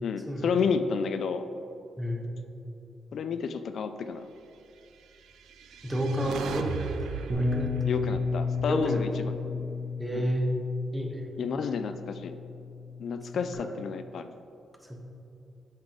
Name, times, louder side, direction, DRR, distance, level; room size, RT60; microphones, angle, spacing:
voice 1, 0.0-1.4 3.1-4.3 7.9-9.1 9.5-9.7 10.1-10.2 11.4-12.3 13.0-14.3, left 6 dB, 70° left, 9 dB, 0.3 m, -31 dB
voice 2, 2.0-2.3 5.8-7.7 8.6-9.0 10.0-10.5 10.9-11.3 13.6-13.7 14.8-15.0, equal, 10° right, 1 dB, 1.2 m, -31 dB
sound 1, 5.2-9.5, right 5 dB, 85° right, 0.4 m, -38 dB
Bass guitar, 7.3-13.5, left 4 dB, 50° right, 1.4 m, -33 dB
7.9 x 5.6 x 3.8 m, 2.7 s
cardioid pair, 80°, 0 cm